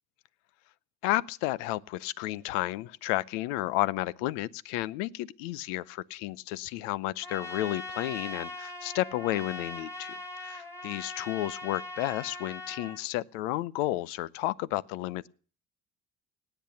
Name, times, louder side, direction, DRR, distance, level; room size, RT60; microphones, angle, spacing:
voice 1, 1.0-10.1 10.4-15.3, left 16 dB, 80° left, 0.7 m, -32 dB
Trumpet, 7.2-13.0, left 2 dB, 10° left, 5.1 m, -40 dB
18.5 x 8.1 x 7.0 m
hypercardioid pair, 65°, 37 cm